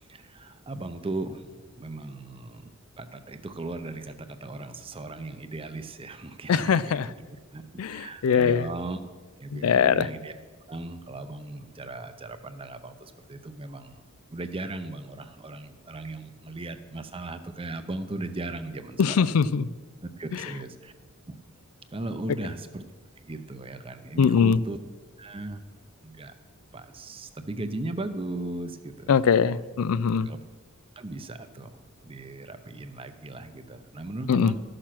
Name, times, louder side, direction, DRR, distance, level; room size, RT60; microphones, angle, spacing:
voice 1, 0.1-2.7 3.0-7.1 7.5-9.0 9.4-10.3 10.7-14.0 14.3-19.2 20.2-20.9 21.9-22.9 23.2-24.8 25.2-25.6 26.0-26.3 26.7-29.1 30.3-30.4 31.0-31.7 32.0-34.6, right 2 dB, 25° right, 9 dB, 0.6 m, -37 dB
voice 2, 6.5-7.1 7.8-8.7 9.5-10.1 19.0-19.7 20.3-20.5 24.2-24.6 29.1-30.3 34.3-34.5, left 6 dB, 75° left, 18 dB, 0.4 m, -22 dB
13.0 x 6.6 x 5.9 m, 1.4 s
head